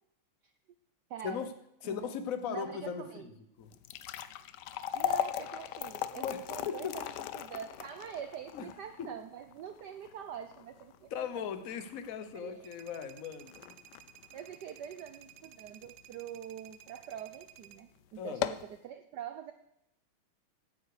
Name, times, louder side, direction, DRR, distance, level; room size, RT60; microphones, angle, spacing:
voice 1, 1.1-1.5 1.8-2.1 2.5-3.3 4.7-11.4 12.3-12.7 14.3-19.5, right 9 dB, 65° right, 9 dB, 1.1 m, -44 dB
voice 2, 1.8-3.3 3.6-3.7 6.1-7.0 8.5-8.7 9.0-9.1 11.1-13.6 18.2-18.4, left 7 dB, 50° left, 9 dB, 1.2 m, -38 dB
sound 1, 3.6-15.9 16.4-16.5 17.2-17.3 17.7-17.8 18.2-18.8, left 11 dB, 70° left, 1.0 m, -39 dB
sound 2, 12.6-17.8, right 11 dB, 85° right, 1.6 m, -55 dB
16.0 x 9.5 x 4.9 m, 0.81 s
omnidirectional pair, 2.4 m